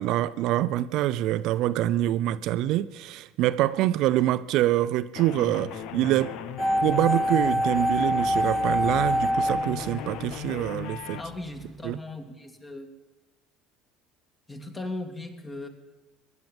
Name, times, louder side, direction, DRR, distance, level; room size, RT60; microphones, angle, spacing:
voice 1, 0.0-6.3 6.8-11.2 11.8-12.0, right 14 dB, 65° right, 0.5 m, -25 dB
sound 1, 5.2-11.2, left 9 dB, 65° left, 0.9 m, -37 dB
sound 2, 6.6-10.7 10.9-11.0, equal, 5° right, 0.4 m, -25 dB
voice 2, 11.2-12.9 14.5-15.7, left 2 dB, 20° left, 2.6 m, -37 dB
16.0 x 11.0 x 7.4 m
hypercardioid pair, 70°, 0 cm